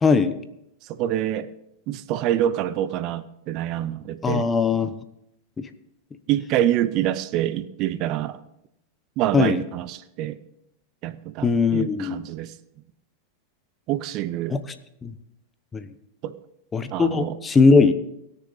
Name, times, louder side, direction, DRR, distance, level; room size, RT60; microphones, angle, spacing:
voice 1, 0.0-0.3 4.2-4.9 9.3-9.6 11.4-12.2 14.5-14.6 15.0-15.1 15.7-15.9 16.7-17.9, left 4 dB, 20° left, 11 dB, 0.9 m, -19 dB
voice 2, 0.8-1.5 1.9-4.5 6.3-8.4 9.2-10.4 11.0-12.5 13.9-14.6 16.2-16.4 16.9-17.4, right 12 dB, 45° right, 15 dB, 0.6 m, -26 dB
20.0 x 6.9 x 4.1 m, 0.81 s
hypercardioid pair, 115°, 0 cm